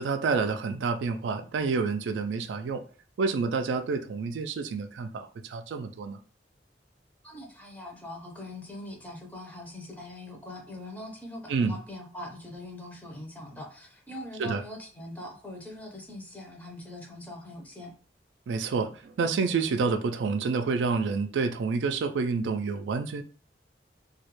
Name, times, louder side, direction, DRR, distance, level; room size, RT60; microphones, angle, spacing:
voice 1, 0.0-2.8 3.2-6.2 11.5-11.8 14.4-14.6 18.5-23.2, right 4 dB, 85° right, 0.3 m, -28 dB
voice 2, 7.2-17.9, left 1 dB, 10° left, 0.5 m, -42 dB
2.3 x 2.1 x 3.0 m
head